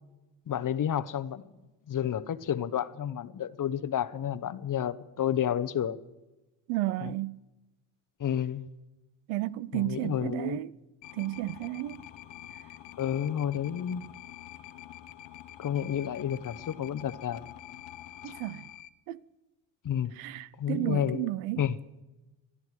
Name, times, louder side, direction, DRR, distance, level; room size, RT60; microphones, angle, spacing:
voice 1, 0.5-1.4 1.9-6.0 7.0-7.1 8.2-8.7 9.7-10.6 13.0-14.1 15.6-17.5 19.8-20.1 20.6-21.3 21.6-21.8, left 9 dB, 40° left, 0.9 m, -30 dB
voice 2, 6.7-7.4 9.3-10.7 11.1-12.0 18.2-18.7 19.1-19.2 20.2-21.6, right 16 dB, 75° right, 0.7 m, -32 dB
sound 1, 11.0-18.9, left 12 dB, 65° left, 1.0 m, -47 dB
19.5 x 13.0 x 4.8 m
supercardioid pair, 65°, 49 cm